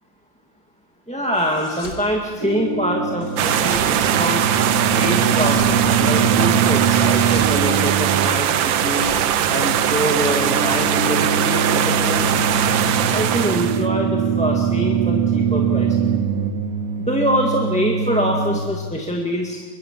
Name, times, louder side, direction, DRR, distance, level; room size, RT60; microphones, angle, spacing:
voice 1, 1.1-4.4 4.9-9.0 9.5-12.5 13.0-16.0 17.0-19.6, equal, 5° left, 0 dB, 1.7 m, -24 dB
sound 1, 1.3-2.1 3.2-3.9 5.1-5.8 6.8-7.6 8.5-10.1, left 1 dB, 60° left, 3.9 m, -39 dB
sound 2, 2.4-18.6, right 6 dB, 50° right, 1.9 m, -23 dB
sound 3, 3.4-13.9, right 10 dB, 80° right, 1.6 m, -20 dB
22.5 x 22.0 x 7.4 m, 1.3 s
omnidirectional pair, 2.1 m